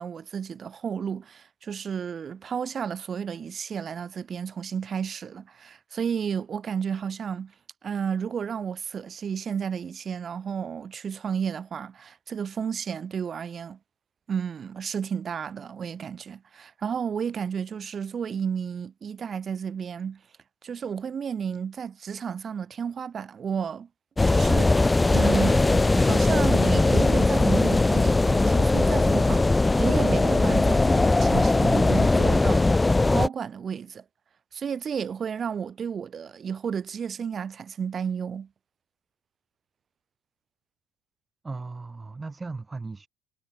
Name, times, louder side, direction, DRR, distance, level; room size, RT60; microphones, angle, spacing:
voice 1, 0.0-7.5 7.8-13.8 14.3-20.2 20.6-23.9 24.3-32.7 33.1-34.0 34.5-38.5, right 7 dB, 35° right, 2.1 m, -32 dB
sound 1, 24.2-33.3, left 2 dB, 15° left, 0.6 m, -20 dB
voice 2, 41.4-43.1, right 3 dB, 20° right, 5.2 m, -37 dB
hypercardioid pair, 65°, 0 cm